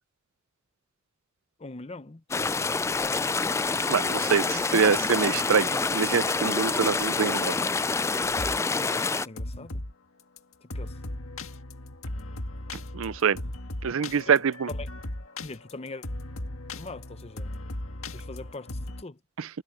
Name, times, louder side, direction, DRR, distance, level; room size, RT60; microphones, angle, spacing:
voice 1, 1.6-2.8 8.8-9.8 10.6-11.0 14.1-14.9 15.4-16.1 16.7-17.5 18.1-19.2, left 2 dB, 30° left, 0.8 m, -42 dB
sound 1, 2.3-9.3, left 4 dB, 15° left, 0.3 m, -27 dB
voice 2, 3.9-7.5 12.9-13.4 13.8-14.7 19.4-19.5, right 6 dB, 70° right, 0.5 m, -25 dB
sound 2, 8.2-8.6 8.9-9.9 10.4-10.5 10.7-19.0, left 1 dB, 75° left, 1.8 m, -37 dB
head